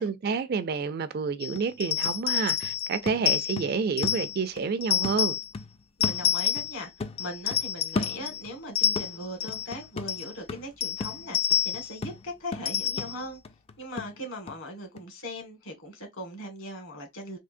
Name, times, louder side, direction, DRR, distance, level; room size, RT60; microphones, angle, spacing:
voice 1, 0.0-5.4, right 5 dB, 45° right, 0.4 m, -29 dB
sound 1, 1.1-1.2 1.6-4.7 5.0-6.7 7.0-8.6 9.0-14.6 15.0-15.1, left 3 dB, 30° left, 0.3 m, -37 dB
sound 2, 1.4-4.4 4.8-5.5 6.0-6.8 7.2-8.4 8.8-9.8 10.1-10.3 10.8-12.0 12.7-13.2, left 10 dB, 90° left, 0.5 m, -28 dB
voice 2, 6.0-13.4 13.8-17.4, equal, 65° left, 1.7 m, -39 dB
3.7 x 2.7 x 2.5 m
head